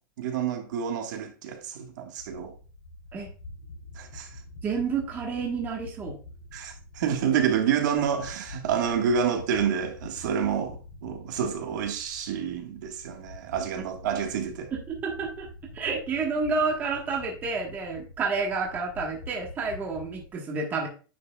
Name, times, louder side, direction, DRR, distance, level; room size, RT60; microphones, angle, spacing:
voice 1, 0.2-2.5 4.0-4.3 6.5-14.7, right 7 dB, 55° right, 1.5 m, -28 dB
sound 1, 2.2-20.3, left 2 dB, 85° left, 3.3 m, -46 dB
voice 2, 4.6-6.2 14.7-15.5 15.7-20.9, right 4 dB, 15° right, 1.3 m, -29 dB
9.5 x 6.2 x 2.3 m
supercardioid pair, 175°, 12 cm